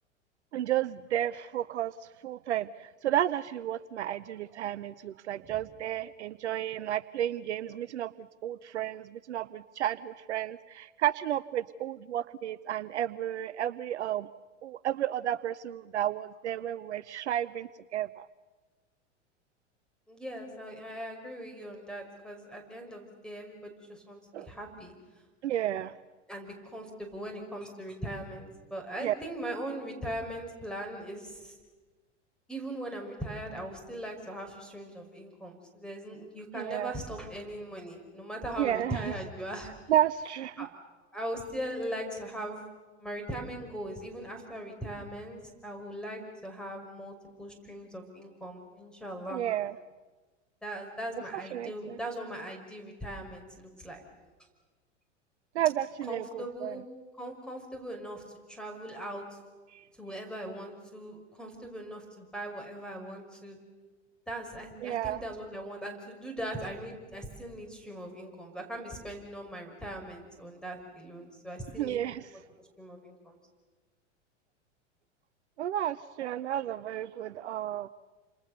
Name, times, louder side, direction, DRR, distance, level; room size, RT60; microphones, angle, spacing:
voice 1, 0.5-1.9 2.2-14.3 14.6-18.3 24.3-24.5 25.4-25.9 29.0-29.1 36.5-37.0 38.6-39.1 39.9-40.7 49.3-49.7 51.3-52.0 55.5-56.8 59.7-59.8 64.8-65.2 71.8-72.3 75.6-77.9, right 12 dB, 65° right, 18 dB, 0.7 m, -32 dB
voice 2, 20.1-24.9 26.3-31.6 32.5-39.7 40.6-40.7 41.1-42.7 43.0-49.4 50.6-54.0 56.1-56.8 57.2-58.2 58.5-59.2 60.0-63.6 64.3-72.0 72.3-72.4 72.8-73.4, right 1 dB, ahead, 3 dB, 5.9 m, -40 dB
29.5 x 27.0 x 6.8 m, 1.3 s
figure-of-eight pair, 90°, 37 cm